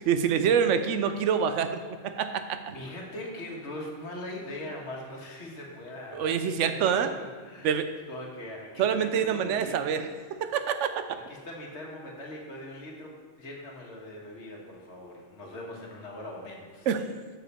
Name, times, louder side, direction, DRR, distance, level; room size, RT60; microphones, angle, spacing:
voice 1, 0.0-2.8 6.1-7.1 7.6-7.9 8.8-10.1 10.5-11.0 16.9-17.0, right 7 dB, 90° right, 9 dB, 0.9 m, -26 dB
voice 2, 2.7-7.8 8.1-10.1 11.3-16.9, left 1 dB, 70° left, -1 dB, 1.6 m, -41 dB
7.0 x 6.0 x 4.3 m, 1.5 s
omnidirectional pair, 1.2 m